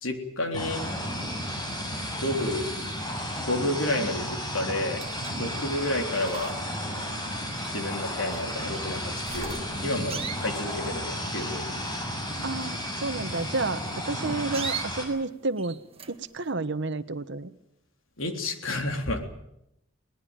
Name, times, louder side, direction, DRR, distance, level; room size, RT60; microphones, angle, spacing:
voice 1, 0.0-0.8 2.2-2.7 3.4-5.0 5.4-6.5 7.7-9.6 9.8-11.6 18.2-19.3, left 1 dB, 85° left, 5 dB, 3.6 m, -30 dB
sound 1, 0.5-15.0, equal, 20° left, 6.7 m, -33 dB
sound 2, 4.8-16.5, right 6 dB, 30° right, 1.8 m, -42 dB
voice 2, 12.4-13.8 14.0-15.8 16.1-17.5, right 3 dB, 65° right, 13 dB, 1.2 m, -30 dB
22.0 x 19.5 x 9.0 m, 0.81 s
head